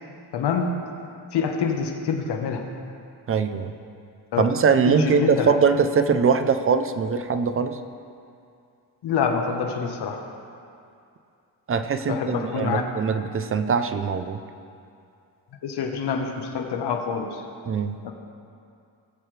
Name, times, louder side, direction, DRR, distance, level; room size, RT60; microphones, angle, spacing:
voice 1, 0.3-0.8 1.3-2.7 4.3-4.4 4.8-5.5 9.0-10.2 12.1-12.8 15.6-17.4 18.0-18.1, left 6 dB, 75° left, 3 dB, 1.2 m, -26 dB
voice 2, 3.3-3.7 4.4-7.8 11.7-14.4 17.7-18.0, right 5 dB, 35° right, 9 dB, 0.6 m, -22 dB
18.5 x 7.7 x 3.3 m, 2.5 s
cardioid pair, 120°, 40 cm